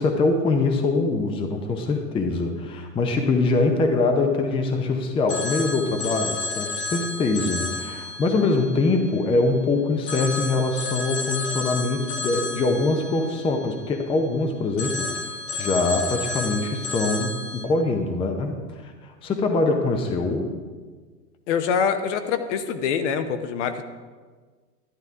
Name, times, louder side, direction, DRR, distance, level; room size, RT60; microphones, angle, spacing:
voice 1, 0.0-20.5, left 3 dB, 10° left, 4 dB, 0.6 m, -23 dB
Telephone, 5.3-9.6 10.1-14.3 14.8-17.7, left 3 dB, 25° left, 1.4 m, -32 dB
voice 2, 21.5-23.8, left 7 dB, 50° left, 9 dB, 1.0 m, -24 dB
11.5 x 10.5 x 3.6 m, 1.5 s
hypercardioid pair, 120°, 48 cm